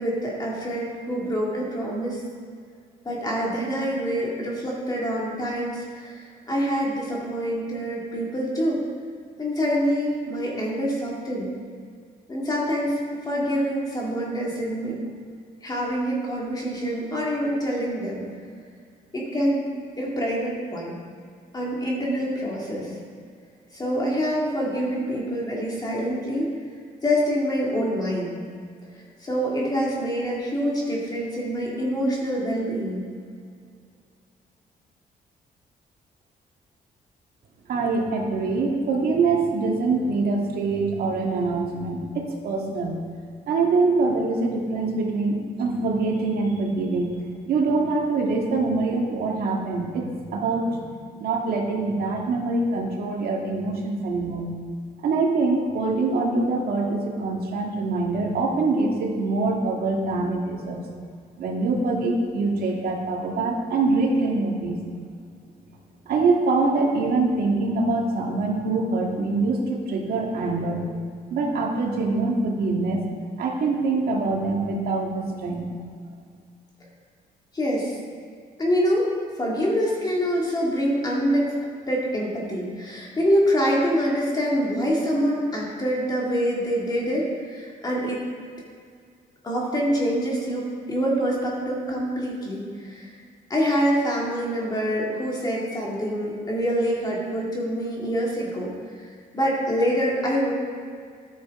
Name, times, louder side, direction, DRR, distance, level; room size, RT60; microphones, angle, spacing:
voice 1, 0.0-2.2 3.0-8.8 9.4-11.5 12.3-13.0 13.3-15.0 15.6-18.2 19.1-19.7 20.0-21.0 21.5-23.0 23.7-26.5 27.0-28.3 29.2-33.0 77.5-78.0 78.6-79.1 79.4-81.5 81.9-88.2 89.4-93.1 93.5-98.7 99.0-99.1 99.3-100.5, equal, 25° left, -4 dB, 2.1 m, -25 dB
voice 2, 37.7-43.0 43.5-47.2 47.5-50.1 50.3-54.5 55.0-60.9 61.4-64.8 66.1-71.0 71.3-73.0 73.4-75.7, right 3 dB, 75° right, -1 dB, 1.9 m, -24 dB
13.5 x 9.3 x 3.7 m, 2.1 s
cardioid pair, 135°, 16 cm